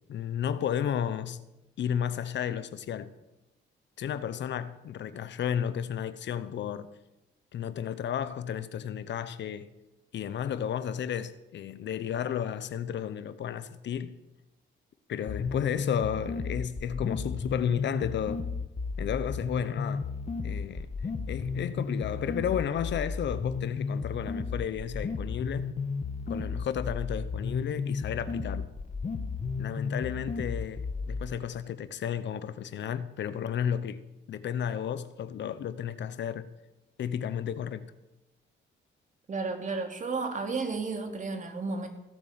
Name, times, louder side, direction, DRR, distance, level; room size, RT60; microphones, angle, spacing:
voice 1, 0.1-1.4 1.8-3.1 4.0-6.9 7.5-9.7 10.1-14.2 15.1-18.4 19.0-20.0 20.4-20.9 21.3-25.7 26.3-28.7 29.6-34.0 34.3-36.5 37.0-37.8, left 9 dB, 65° left, 0.9 m, -32 dB
sound 1, 15.3-31.3, left 4 dB, 35° left, 1.6 m, -33 dB
voice 2, 39.3-41.9, right 4 dB, 40° right, 2.8 m, -32 dB
16.5 x 8.4 x 7.6 m
cardioid pair, 90°, 20 cm